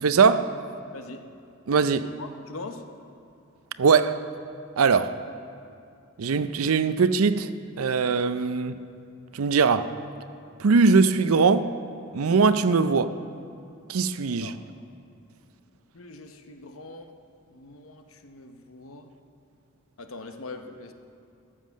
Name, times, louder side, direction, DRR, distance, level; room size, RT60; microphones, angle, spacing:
voice 1, 0.0-0.5 1.7-2.1 3.8-4.2 4.8-5.1 6.2-7.5 7.8-8.8 9.3-9.9 10.6-11.7 12.1-13.1 13.9-14.5, right 5 dB, 90° right, 12 dB, 0.5 m, -21 dB
voice 2, 0.9-1.3 2.2-2.8 14.4-14.6 15.9-17.2 17.5-19.1 20.0-20.9, left 3 dB, 75° left, 6 dB, 0.9 m, -42 dB
14.5 x 7.4 x 6.4 m, 2.6 s
head